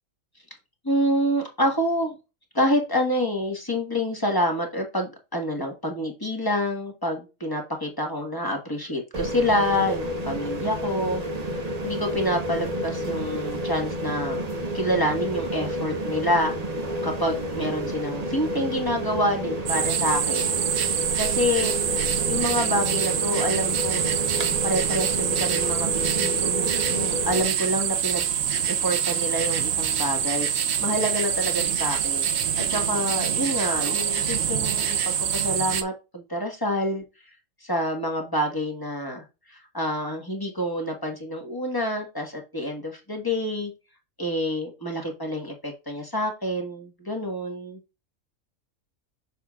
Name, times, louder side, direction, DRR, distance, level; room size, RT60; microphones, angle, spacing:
voice 1, 0.8-2.2 2.5-11.2 11.8-14.5 14.7-16.5 17.0-20.5 21.2-21.7 22.3-24.2 24.6-28.3 28.7-30.5 30.8-32.3 32.6-37.0 37.6-39.2 39.5-43.7 44.2-47.8, equal, 15° left, 2 dB, 1.4 m, -27 dB
sound 1, 9.1-27.4, equal, 30° right, 1.0 m, -30 dB
sound 2, 19.7-35.8, right 8 dB, 60° right, 0.9 m, -25 dB
7.2 x 5.5 x 2.4 m, 0.27 s
omnidirectional pair, 1.4 m